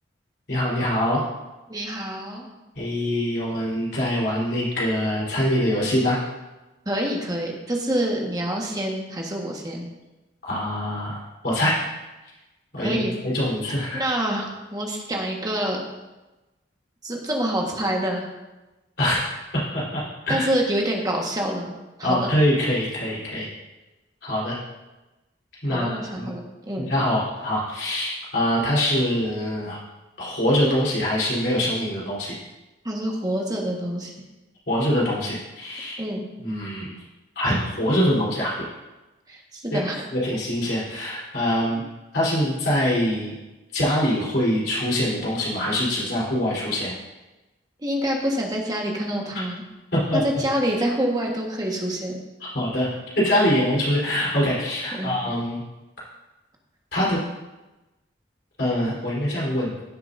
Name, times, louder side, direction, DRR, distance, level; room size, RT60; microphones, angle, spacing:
voice 1, 0.5-1.2 2.8-6.2 10.4-11.2 11.4-11.8 12.7-13.0 13.2-14.1 19.0-19.2 19.5-20.4 22.0-23.5 24.2-24.6 25.6-26.3 26.9-29.8 30.2-32.3 34.7-36.0 36.4-36.9 37.4-38.7 39.7-39.8 40.1-41.8 42.1-43.4 43.7-46.9 49.3-49.4 49.9-50.2 52.4-52.9 53.2-55.6 56.9-57.2 58.6-59.7, left 1 dB, 60° left, -6 dB, 3.8 m, -24 dB
voice 2, 1.7-2.5 6.8-9.9 12.8-13.2 13.9-15.8 17.0-18.3 20.3-21.7 22.0-22.3 25.6-26.9 32.8-34.1 36.0-36.3 39.3-40.1 47.8-49.6 50.1-52.2 54.9-55.1, right 1 dB, 20° right, -1 dB, 1.5 m, -26 dB
16.0 x 7.7 x 2.7 m, 1.1 s
head